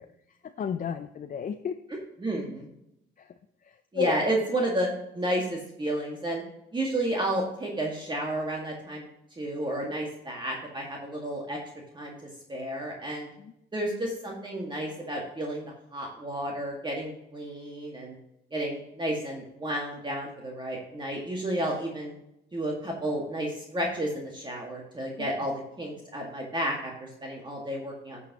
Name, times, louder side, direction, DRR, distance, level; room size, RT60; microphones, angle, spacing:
voice 1, 0.0-1.8 3.2-3.3 3.6-4.1 13.4-13.5 25.2-25.3, left 7 dB, 45° left, 7 dB, 0.5 m, -34 dB
voice 2, 2.2-2.7 3.9-4.9 5.1-6.4 6.7-9.1 9.4-11.6 11.9-12.1 12.5-13.3 13.7-15.6 15.9-18.2 18.5-22.2 22.5-28.2, right 1 dB, 25° right, -1 dB, 1.9 m, -31 dB
11.0 x 7.1 x 3.0 m, 0.81 s
cardioid pair, 90°, 20 cm